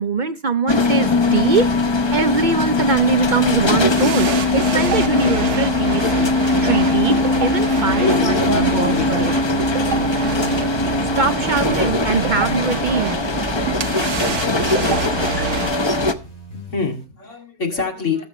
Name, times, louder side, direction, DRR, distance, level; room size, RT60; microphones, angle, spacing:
voice 1, 0.0-6.1 6.6-9.3 11.2-13.2, right 4 dB, 50° right, 0.6 m, -22 dB
sound 1, 0.7-16.1, left 3 dB, 25° left, 0.7 m, -20 dB
sound 2, 3.9-15.8, right 7 dB, 75° right, 1.1 m, -27 dB
voice 2, 7.9-9.6 15.0-15.1 16.2-18.3, left 4 dB, 80° left, 2.7 m, -26 dB
sound 3, 8.3-17.0, equal, 65° left, 5.6 m, -39 dB
19.0 x 7.1 x 3.0 m
omnidirectional pair, 1.2 m